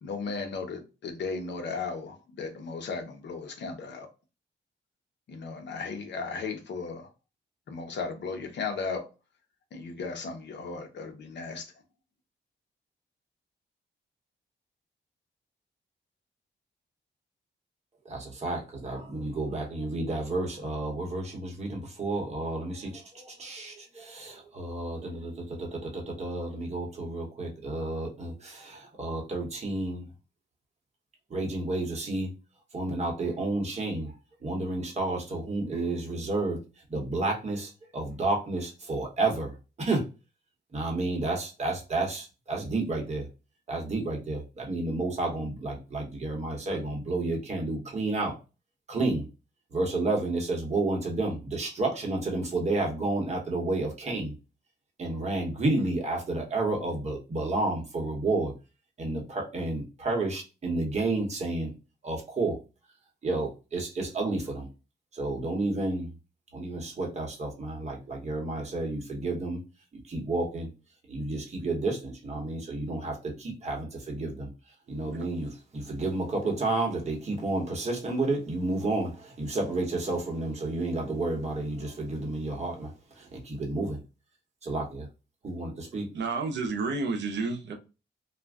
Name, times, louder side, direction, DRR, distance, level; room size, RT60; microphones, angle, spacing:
voice 1, 0.0-4.1 5.3-7.0 7.7-9.0 9.7-11.6, left 4 dB, 65° left, 0.7 m, -35 dB
voice 2, 18.0-30.0 31.3-32.3 32.7-34.1 34.4-36.6 36.9-40.0 40.7-43.3 43.7-48.3 48.9-49.2 49.7-54.3 55.0-58.5 59.0-61.7 62.0-62.6 63.2-64.7 65.1-66.1 66.5-69.6 70.1-70.7 71.1-74.5 74.9-84.0 84.6-85.1 85.4-86.0, right 2 dB, 35° right, 1.0 m, -31 dB
voice 3, 86.1-87.7, right 3 dB, 65° right, 0.7 m, -30 dB
2.4 x 2.2 x 3.4 m
wide cardioid pair, 145°, 19 cm